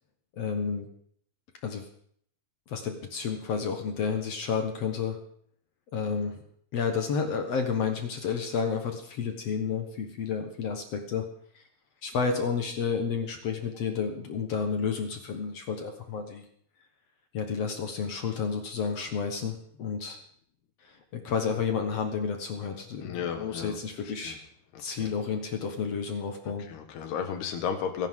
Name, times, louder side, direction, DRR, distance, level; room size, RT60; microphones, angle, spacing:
voice 1, 0.4-0.9 1.6-1.8 2.7-5.2 5.9-6.4 6.7-11.3 11.5-11.6 12.0-16.5 17.3-20.2 20.8-24.4 24.8-26.7, left 6 dB, 60° left, 5 dB, 1.8 m, -31 dB
voice 2, 23.0-23.8 24.2-24.4 24.7-25.1 26.7-28.1, left 7 dB, 85° left, 6 dB, 3.6 m, -33 dB
25.0 x 11.0 x 3.8 m, 0.64 s
omnidirectional pair, 4.5 m